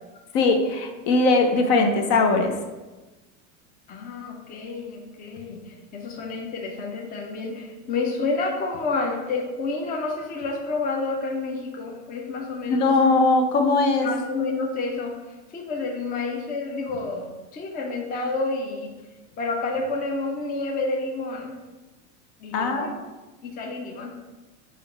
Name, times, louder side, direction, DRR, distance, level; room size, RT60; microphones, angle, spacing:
voice 1, 0.3-2.5 12.8-14.1 22.5-22.9, left 3 dB, 55° left, 4 dB, 0.9 m, -20 dB
voice 2, 3.9-12.9 14.0-18.9 19.4-21.6 22.4-23.0 23.4-24.1, left 3 dB, 20° left, 1 dB, 0.5 m, -29 dB
4.9 x 2.5 x 4.2 m, 1.2 s
supercardioid pair, 115°, 41 cm